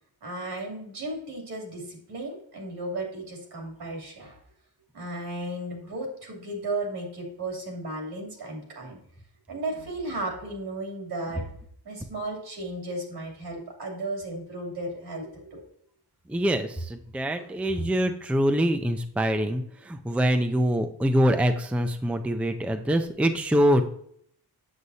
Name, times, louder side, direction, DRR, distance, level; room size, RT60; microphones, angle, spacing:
voice 1, 0.2-4.4 4.9-9.0 9.5-11.5 11.8-15.6 17.4-17.5, right 2 dB, 75° right, 1 dB, 2.8 m, -35 dB
voice 2, 16.3-23.8, equal, 5° right, 7 dB, 0.4 m, -24 dB
8.0 x 7.3 x 2.7 m, 0.67 s
wide cardioid pair, 135°, 39 cm